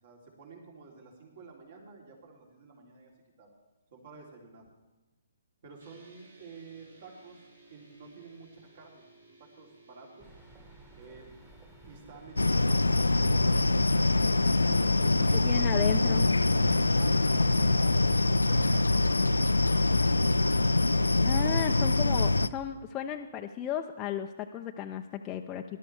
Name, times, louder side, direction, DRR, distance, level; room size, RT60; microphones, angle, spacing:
voice 1, 0.0-3.1 3.4-3.5 3.9-4.7 5.6-7.4 7.7-10.3 10.9-11.3 11.8-13.0 14.9-15.5 17.0-18.0, right 4 dB, 50° right, -1 dB, 3.3 m, -51 dB
sound 1, 5.8-13.5, right 2 dB, 80° right, 4.5 m, -59 dB
sound 2, 10.2-18.3, right 2 dB, 10° right, 1.6 m, -54 dB
sound 3, 12.4-22.5, left 2 dB, 85° left, 0.4 m, -24 dB
voice 2, 15.4-16.3 21.2-25.8, left 9 dB, 20° left, 3 dB, 0.5 m, -35 dB
19.0 x 12.0 x 3.4 m, 1.1 s
figure-of-eight pair, 135°, 0 cm